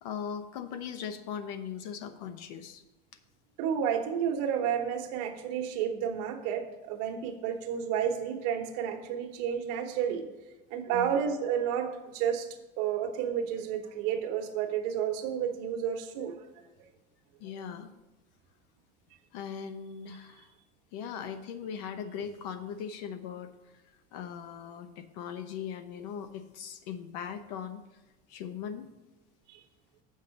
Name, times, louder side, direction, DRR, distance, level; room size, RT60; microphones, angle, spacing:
voice 1, 0.0-2.8 10.9-11.1 17.4-17.9 19.3-20.5 20.9-23.5 24.1-27.8 28.3-28.9, left 7 dB, 75° left, 10 dB, 0.9 m, -39 dB
voice 2, 3.6-10.3 10.7-12.5 12.8-16.5 29.5-29.6, right 8 dB, 70° right, 5 dB, 1.1 m, -31 dB
7.4 x 5.6 x 6.4 m, 1.1 s
cardioid pair, 165°, 21 cm